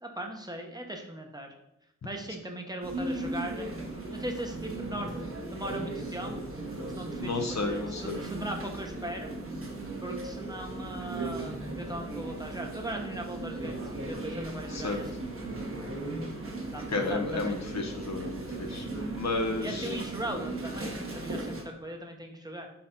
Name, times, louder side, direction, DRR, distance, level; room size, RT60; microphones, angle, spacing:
voice 1, 0.0-1.5 2.0-3.7 4.1-5.1 5.5-6.4 7.0-9.3 10.0-13.8 14.0-15.1 15.4-15.5 16.7-17.6 18.6-19.0 19.6-22.7, right 1 dB, 15° right, 2 dB, 1.0 m, -39 dB
sound 1, 2.8-21.6, right 2 dB, 45° right, 1.4 m, -37 dB
voice 2, 7.2-8.2 14.7-15.0 16.9-18.9 19.1-20.0, left 3 dB, 65° left, 2 dB, 1.0 m, -32 dB
4.3 x 4.1 x 5.4 m, 0.82 s
cardioid pair, 65°, 30 cm